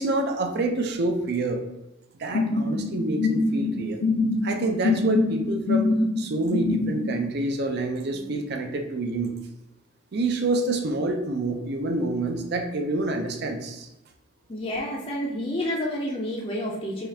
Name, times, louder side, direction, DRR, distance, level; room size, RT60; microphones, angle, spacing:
voice 1, 0.0-1.6 2.2-4.0 4.4-5.9 6.2-9.3 10.1-13.9, right 2 dB, 55° right, 5 dB, 0.5 m, -27 dB
sound 1, 2.3-7.1, left 3 dB, 75° left, 0.5 m, -24 dB
voice 2, 14.5-17.1, left 1 dB, 25° left, -3 dB, 0.4 m, -29 dB
5.0 x 2.4 x 2.7 m, 0.89 s
head